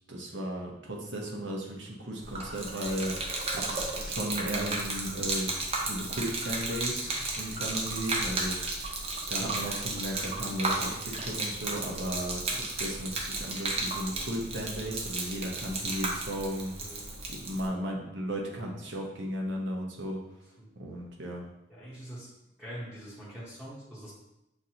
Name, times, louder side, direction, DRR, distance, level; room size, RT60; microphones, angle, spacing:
voice 1, 0.1-3.2 3.5-5.5 5.8-17.0 17.3-20.2 20.7-21.5, equal, 75° right, 0 dB, 0.9 m, -35 dB
Gurgling / Liquid, 2.2-17.7, right 2 dB, 35° right, 0.6 m, -34 dB
voice 2, 16.7-17.2 20.6-20.7 21.7-22.3 22.6-24.1, equal, 5° right, -9 dB, 0.9 m, -44 dB
6.0 x 2.6 x 2.8 m, 0.88 s
head